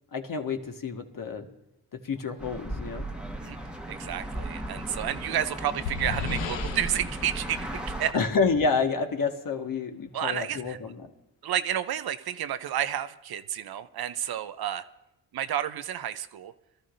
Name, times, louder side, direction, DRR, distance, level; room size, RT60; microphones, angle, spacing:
voice 1, 0.1-1.5 1.9-3.1 8.1-11.1, left 4 dB, 50° left, 4 dB, 1.6 m, -29 dB
sound 1, 2.4-8.1, right 1 dB, ahead, 1.3 m, -36 dB
voice 2, 3.9-8.1 10.1-10.8 11.4-14.8 15.3-16.5, right 10 dB, 60° right, 12 dB, 0.7 m, -31 dB
sound 2, 5.5-8.7, left 6 dB, 90° left, 0.9 m, -37 dB
23.0 x 13.0 x 2.6 m, 0.91 s
supercardioid pair, 55°, 43 cm